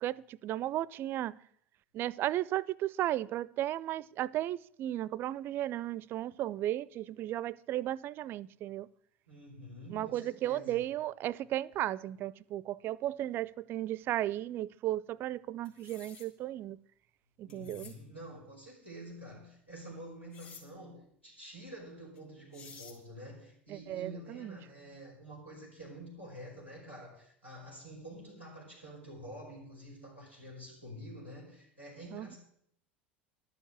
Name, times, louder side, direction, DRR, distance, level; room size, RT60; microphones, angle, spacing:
voice 1, 0.0-1.3 1.9-8.9 9.9-16.8 17.4-17.9 23.7-24.6 32.1-32.3, right 13 dB, 40° right, 0.4 m, -35 dB
voice 2, 9.3-10.8 17.5-32.4, equal, 85° left, 5.0 m, -48 dB
sound 1, 15.6-16.3 17.5-18.0 20.3-20.6 22.1-22.2 22.5-23.0, left 5 dB, 35° left, 3.5 m, -52 dB
11.5 x 7.2 x 7.9 m
figure-of-eight pair, 75°, 6 cm